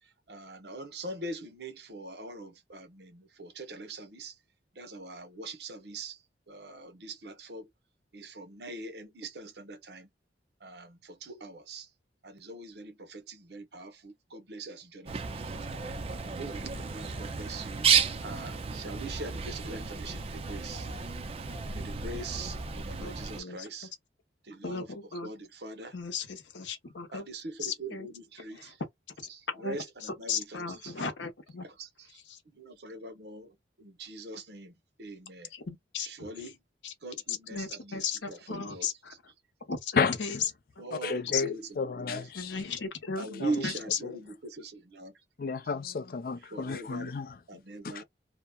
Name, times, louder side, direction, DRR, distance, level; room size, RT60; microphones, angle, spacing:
voice 1, 0.3-4.3 4.8-6.1 6.5-7.6 8.1-10.1 10.6-11.8 12.2-15.2 15.5-15.6 16.4-17.8 18.2-20.9 21.7-23.9 24.5-24.8 25.2-25.9 27.1-28.7 29.6-29.8 30.2-30.6 32.6-33.5 33.8-34.7 35.0-35.5 36.2-36.5 37.0-37.6 37.9-38.0 38.3-38.4 38.7-38.8 40.8-41.6 42.0-42.2 43.2-43.7 44.0-44.1 44.5-45.1 46.5-47.1 47.5-48.0, right 2 dB, 65° right, 0.8 m, -41 dB
Bird, 15.1-23.4, right 6 dB, 30° right, 0.4 m, -33 dB
voice 2, 23.0-23.9 24.6-25.3 25.9-27.3 27.6-28.1 28.5-28.7 29.2-31.7 32.1-32.4 35.5-36.5 36.8-36.9 37.3-39.3 39.7-40.4 40.8-40.9 41.3-41.4 42.3-44.0 45.7-46.2 47.5-47.6, left 6 dB, 85° left, 0.8 m, -37 dB
voice 3, 40.9-42.6 43.4-43.7 44.0-44.1 45.4-47.4 47.8-48.0, left 5 dB, 50° left, 0.4 m, -32 dB
2.8 x 2.1 x 2.2 m
head